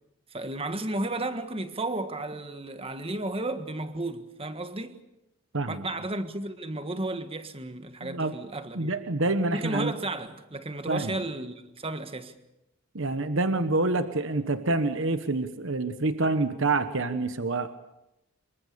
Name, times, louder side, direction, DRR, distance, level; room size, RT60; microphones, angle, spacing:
voice 1, 0.3-5.0 5.7-9.0 9.5-12.4, right 2 dB, 25° right, 1.6 m, -33 dB
voice 2, 8.0-8.4 8.7-9.9 10.9-11.2 12.9-17.8, right 2 dB, 60° right, 1.2 m, -27 dB
26.5 x 23.5 x 6.9 m
head